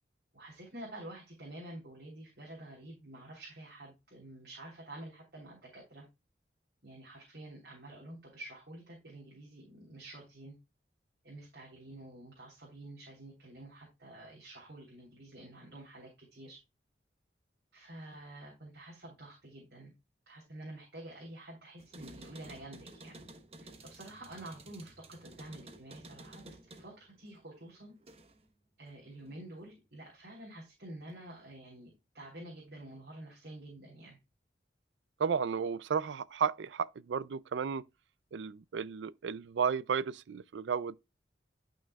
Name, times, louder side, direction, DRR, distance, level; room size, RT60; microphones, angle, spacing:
voice 1, 0.3-6.1 6.8-10.5 11.2-16.6 17.7-19.9 20.3-23.2 23.6-27.9 28.8-34.2, right 1 dB, 65° right, 3.3 m, -49 dB
sound 1, 21.8-28.5 28.9-29.7, right 2 dB, 35° right, 1.0 m, -53 dB
voice 2, 35.2-37.9 38.3-41.0, right 6 dB, 90° right, 0.4 m, -33 dB
11.0 x 6.0 x 2.3 m
head